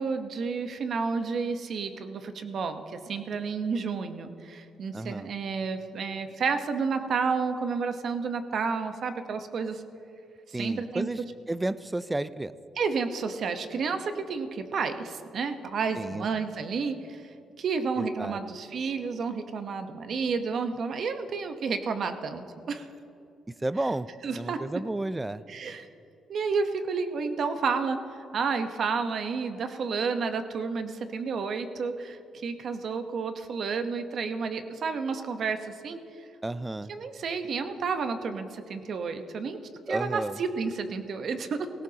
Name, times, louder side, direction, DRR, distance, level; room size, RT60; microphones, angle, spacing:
voice 1, 0.0-9.8 10.5-11.1 12.8-17.3 17.6-22.9 24.2-24.8 25.5-25.9 26.3-36.3 36.9-39.6 39.9-41.7, right 5 dB, 60° right, 8 dB, 1.0 m, -31 dB
voice 2, 4.9-5.3 10.5-11.2 11.5-12.5 16.0-16.3 18.0-18.4 23.6-24.1 24.4-25.4 36.4-36.9 39.9-40.4, right 2 dB, 15° right, 16 dB, 0.4 m, -31 dB
19.0 x 17.0 x 2.9 m, 2.7 s
cardioid pair, 90°, 0 cm